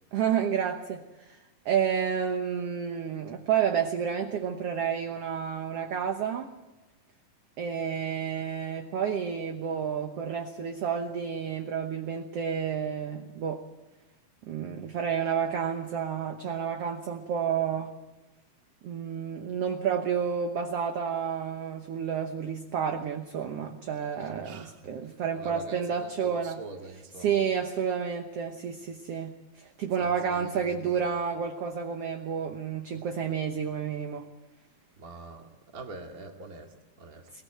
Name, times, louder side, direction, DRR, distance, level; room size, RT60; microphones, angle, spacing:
voice 1, 0.1-1.4 1.7-6.5 7.6-13.6 14.4-17.9 18.8-26.6 27.2-34.3 37.3-37.4, right 7 dB, 60° right, 5 dB, 1.7 m, -30 dB
voice 2, 24.2-24.9 25.3-27.5 30.0-31.1 34.9-37.4, right 3 dB, 30° right, 3 dB, 2.0 m, -45 dB
22.0 x 20.5 x 7.7 m, 1.1 s
omnidirectional pair, 4.0 m